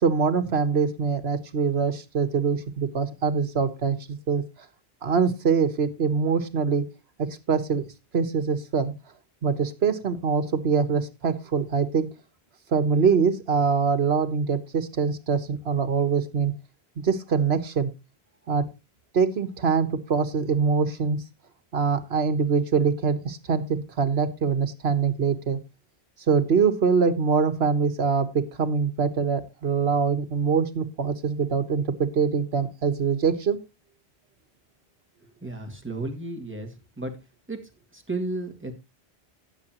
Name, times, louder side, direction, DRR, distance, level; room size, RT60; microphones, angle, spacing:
voice 1, 0.0-4.4 5.0-6.8 7.2-7.8 8.1-8.9 9.4-12.1 12.7-16.5 17.0-17.9 18.5-18.6 19.1-21.2 21.7-25.6 26.3-33.6, right 5 dB, 75° right, 9 dB, 1.4 m, -24 dB
voice 2, 35.2-37.1 37.5-38.7, right 2 dB, 10° right, 3 dB, 2.0 m, -34 dB
18.0 x 7.1 x 3.0 m, 0.25 s
omnidirectional pair, 1.0 m